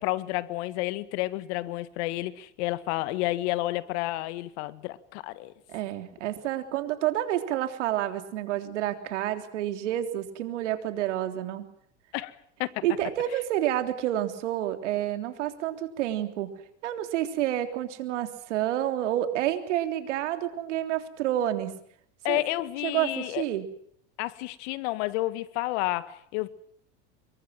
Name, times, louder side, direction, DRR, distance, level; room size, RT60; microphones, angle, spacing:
voice 1, 0.0-5.5 12.1-12.3 12.6-12.8 22.2-23.4 24.2-26.5, left 18 dB, 70° left, 1.8 m, -30 dB
voice 2, 5.7-11.7 12.8-16.5 16.8-21.8 22.3-22.4 22.8-23.7, right 12 dB, 85° right, 3.6 m, -29 dB
25.5 x 22.5 x 7.6 m
supercardioid pair, 110°, 35 cm